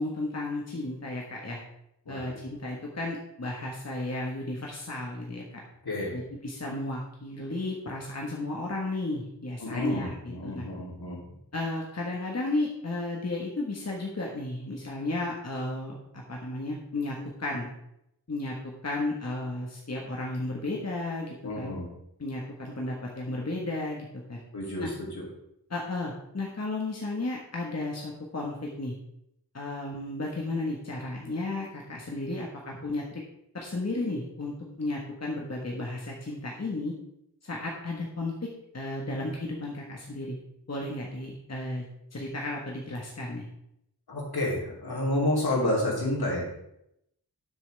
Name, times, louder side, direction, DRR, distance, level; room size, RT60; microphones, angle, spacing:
voice 1, 0.0-1.6 2.1-5.4 6.1-10.7 11.5-15.9 16.3-17.7 18.3-18.5 18.8-21.7 22.2-24.4 24.8-24.9 25.7-28.9 29.5-33.2 33.5-36.9 37.4-38.3 38.7-40.3 40.7-41.8 42.1-43.5, left 2 dB, 40° left, -2 dB, 1.5 m, -33 dB
voice 2, 5.8-6.2 9.6-11.2 21.4-21.9 24.5-24.9 25.1-25.2 44.1-46.4, left 1 dB, 70° left, -4 dB, 3.4 m, -29 dB
11.5 x 7.0 x 3.5 m, 0.80 s
wide cardioid pair, 95°, 39 cm